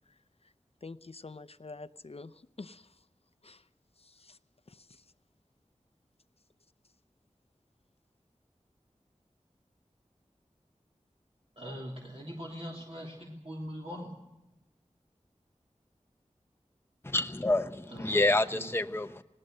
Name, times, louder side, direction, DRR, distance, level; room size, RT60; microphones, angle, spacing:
voice 1, 0.8-2.9 3.4-3.6 4.0-4.4 4.7-5.0, left 3 dB, 55° left, 14 dB, 0.7 m, -47 dB
voice 2, 11.6-14.1 17.9-18.2 18.5-18.7, equal, 50° right, -2 dB, 3.2 m, -41 dB
voice 3, 17.0-19.2, left 2 dB, 20° left, 9 dB, 0.7 m, -28 dB
19.0 x 18.5 x 7.8 m, 0.94 s
wide cardioid pair, 40°, 12 cm